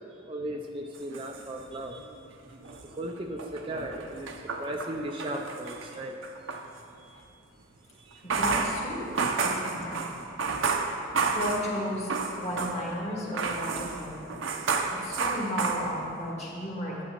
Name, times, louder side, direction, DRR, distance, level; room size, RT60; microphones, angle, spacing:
voice 1, 0.1-2.1 2.8-4.3 4.6-6.2 6.5-6.6 6.9-7.3 8.0-8.2, right 1 dB, 25° right, 1 dB, 0.4 m, -37 dB
sound 1, 0.9-2.2 2.5-6.7 8.1-13.0 13.3-16.3, right 4 dB, 70° right, 0.6 m, -31 dB
voice 2, 8.2-9.1 9.4-10.0 11.3-12.1 12.4-14.3 14.9-17.0, equal, 35° left, -4 dB, 1.7 m, -34 dB
11.0 x 8.4 x 2.9 m, 2.7 s
head